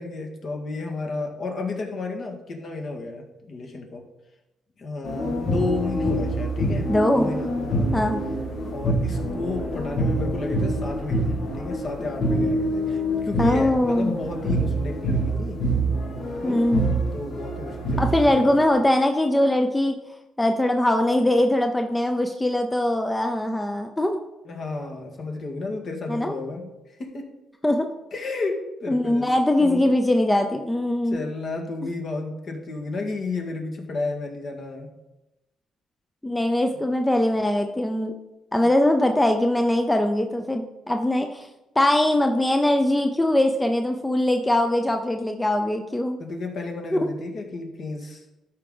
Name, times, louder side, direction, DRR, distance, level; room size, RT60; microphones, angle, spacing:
voice 1, 0.0-4.0 4.8-8.0 8.6-15.6 16.4-16.6 17.1-18.5 24.5-27.3 28.1-29.8 31.0-34.9 38.6-38.7 46.2-48.2, left 3 dB, 55° left, 2 dB, 1.8 m, -32 dB
sound 1, 5.0-18.7, right 1 dB, 70° left, 1.9 m, -26 dB
voice 2, 6.9-7.3 7.9-8.2 13.4-14.2 16.4-16.9 18.0-20.0 20.4-24.2 26.1-26.3 27.6-27.9 28.9-31.3 36.2-38.1 38.5-41.5 41.8-46.2, left 1 dB, 10° left, 5 dB, 0.6 m, -21 dB
13.0 x 4.9 x 3.9 m, 0.98 s
cardioid pair, 90°, 0 cm